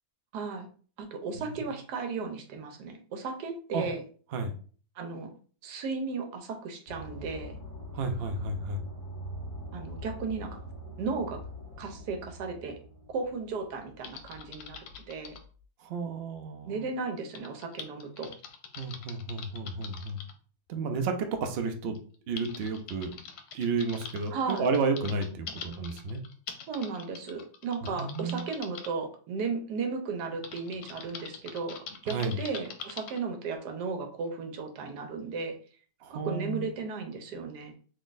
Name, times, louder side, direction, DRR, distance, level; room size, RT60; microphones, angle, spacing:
voice 1, 0.3-0.7 1.0-4.0 5.0-5.3 5.6-7.5 9.7-10.6 11.0-11.4 11.8-12.8 13.1-14.8 15.1-15.4 16.6-18.3 24.3-24.7 26.7-35.6 36.1-37.7, right 4 dB, 85° right, 5 dB, 1.3 m, -35 dB
sound 1, 6.9-14.0, equal, 35° left, 1.7 m, -43 dB
voice 2, 7.9-8.8 15.8-16.9 18.8-20.2 20.7-22.0 22.3-23.1 23.5-26.2 28.0-28.4 32.1-32.4 36.0-36.7, right 4 dB, 65° right, 5 dB, 0.6 m, -32 dB
Typing, 14.0-15.5 17.4-20.3 21.4-21.5 22.0-28.9 30.4-33.2, left 6 dB, 75° left, 1.1 m, -44 dB
3.8 x 3.0 x 2.5 m, 0.42 s
omnidirectional pair, 1.7 m